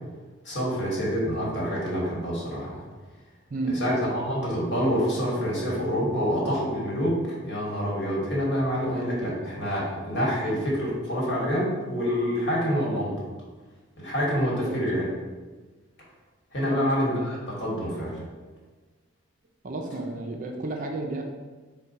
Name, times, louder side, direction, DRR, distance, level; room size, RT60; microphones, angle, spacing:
voice 1, 0.4-2.8 3.8-7.1 7.4-13.1 14.0-15.1 16.5-18.2, equal, 55° left, -5 dB, 1.3 m, -27 dB
voice 2, 3.5-3.8 14.5-14.8 16.6-16.8 19.6-21.2, right 2 dB, 40° right, 2 dB, 0.4 m, -32 dB
4.5 x 2.2 x 4.0 m, 1.3 s
head